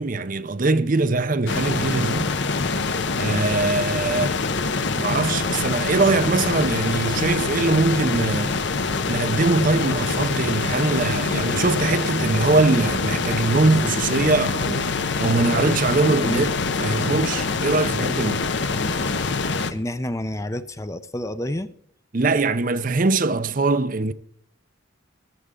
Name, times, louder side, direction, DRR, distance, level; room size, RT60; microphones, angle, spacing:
voice 1, 0.0-2.3 3.2-4.3 5.0-8.5 9.1-14.9 15.2-16.5 16.8-18.4 22.1-24.1, right 3 dB, 40° right, 0.6 m, -22 dB
sound 1, 1.5-19.7, left 4 dB, 55° left, 0.8 m, -25 dB
voice 2, 19.7-21.7, left 1 dB, 15° left, 0.5 m, -29 dB
15.0 x 12.5 x 3.7 m
head